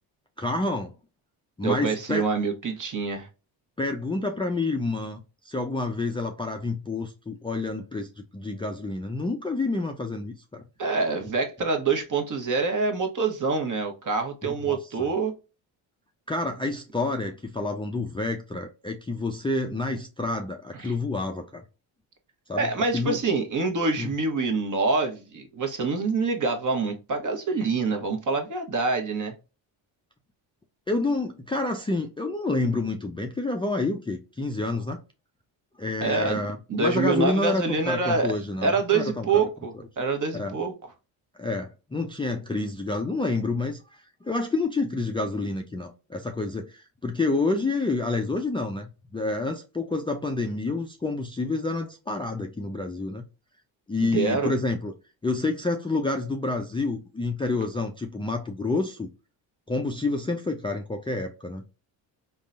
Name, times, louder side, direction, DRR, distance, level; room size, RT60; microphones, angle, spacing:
voice 1, 0.4-0.9 1.6-2.2 3.8-5.2 5.4-10.6 14.4-14.8 16.3-21.6 22.5-23.2 24.0-24.1 30.9-35.0 35.8-39.3 40.3-40.6 41.4-53.2 53.9-54.9 55.2-59.1 59.7-61.6, left 3 dB, 10° left, 0.4 m, -28 dB
voice 2, 1.6-3.3 10.8-15.3 20.8-20.9 22.5-29.3 36.0-36.4 36.7-38.3 38.6-40.7 54.0-54.5, right 4 dB, 40° right, 1.0 m, -26 dB
3.6 x 2.2 x 2.5 m
supercardioid pair, 70°, 46 cm